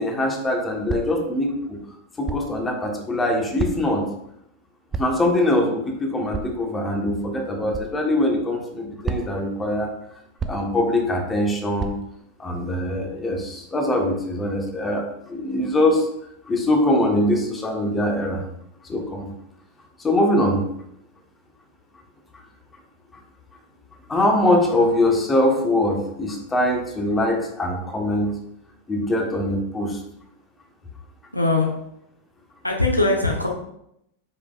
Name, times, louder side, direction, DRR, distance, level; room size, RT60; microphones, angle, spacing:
voice 1, 0.0-1.8 2.2-4.1 5.0-9.9 10.4-11.9 12.4-16.1 16.5-18.4 18.9-19.3 20.0-20.6 24.1-28.3 28.9-30.0, left 1 dB, 15° left, 2 dB, 1.3 m, -22 dB
sound 1, 0.9-1.3 2.2-2.5 3.6-4.0 4.9-5.3 6.3-6.5 7.7-7.9 9.0-9.5 10.4-10.8 11.8-12.0, right 5 dB, 20° right, 0.5 m, -30 dB
voice 2, 31.3-31.7 32.6-33.5, left 2 dB, 85° left, 0 dB, 1.1 m, -20 dB
8.3 x 5.4 x 2.5 m, 0.77 s
figure-of-eight pair, 90°, 0 cm